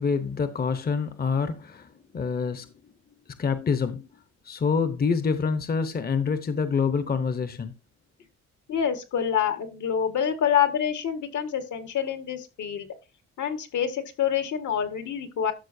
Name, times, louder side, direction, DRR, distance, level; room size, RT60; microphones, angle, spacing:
voice 1, 0.0-2.7 3.4-4.1 4.5-7.7, left 5 dB, 30° left, 0.9 m, -26 dB
voice 2, 8.7-12.9 13.4-15.5, left 8 dB, 70° left, 1.8 m, -26 dB
12.5 x 6.0 x 2.7 m
cardioid pair, 90°, 30 cm